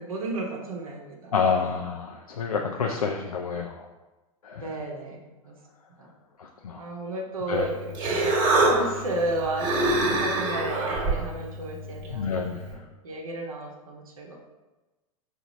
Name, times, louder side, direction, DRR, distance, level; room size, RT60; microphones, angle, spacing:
voice 1, 0.0-1.3 1.6-1.7 4.6-5.5 6.8-8.3 8.7-9.7 10.1-14.4, right 2 dB, 70° right, 0 dB, 0.9 m, -33 dB
voice 2, 1.3-3.9 4.4-4.7 6.4-6.8 7.5-7.7 12.1-12.6, left 5 dB, 80° left, 2 dB, 0.4 m, -28 dB
Human voice, 7.5-12.7, right 2 dB, 45° right, 1.4 m, -26 dB
4.8 x 2.7 x 4.0 m, 1.1 s
figure-of-eight pair, 90°, 18 cm